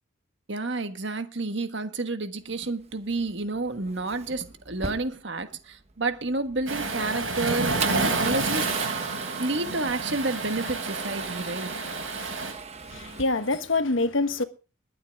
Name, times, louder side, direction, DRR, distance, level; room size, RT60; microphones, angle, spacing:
voice 1, 0.5-9.1 9.3-11.7, right 2 dB, 60° right, 1.5 m, -30 dB
Male speech man speaking / Car / Engine starting, 2.5-13.6, right 5 dB, 30° right, 1.1 m, -38 dB
Waves surf, 6.7-12.5, right 3 dB, 80° right, 5.2 m, -29 dB
voice 2, 12.9-14.4, left 3 dB, 70° left, 1.3 m, -25 dB
21.5 x 8.7 x 3.6 m
head